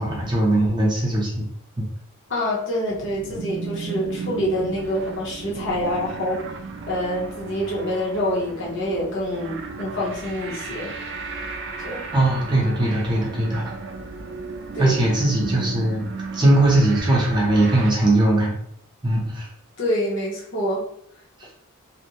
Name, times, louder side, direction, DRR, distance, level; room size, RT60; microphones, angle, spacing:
voice 1, 0.0-1.5 1.8-1.9 12.1-13.7 14.8-16.0 16.3-18.6 19.0-19.5, right 1 dB, 20° right, -4 dB, 0.6 m, -20 dB
voice 2, 2.3-6.4 6.9-10.9 11.8-12.0 14.7-15.0 19.8-20.8, equal, 60° left, -4 dB, 0.9 m, -26 dB
sound 1, 2.9-17.9, right 4 dB, 55° right, 0.3 m, -35 dB
2.5 x 2.1 x 2.9 m, 0.70 s
head